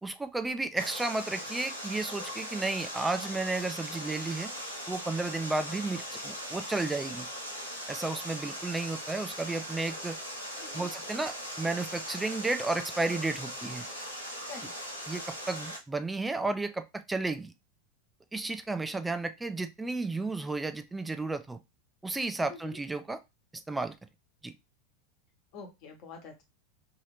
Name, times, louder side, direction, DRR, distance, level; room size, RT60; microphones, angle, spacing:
voice 1, 0.0-4.5 4.9-7.3 7.9-10.2 10.7-13.9 15.1-15.2 15.5-17.5 18.3-21.6 22.0-23.2 23.7-23.9 24.4-24.5, right 3 dB, 10° right, 9 dB, 0.4 m, -33 dB
Water, 0.8-15.8, equal, 90° left, 0.9 m, -40 dB
voice 2, 10.6-10.9 14.5-14.7 22.5-22.8 25.5-26.4, left 4 dB, 45° left, 3 dB, 1.2 m, -46 dB
2.9 x 2.7 x 3.2 m, 0.23 s
figure-of-eight pair, 85°, 0 cm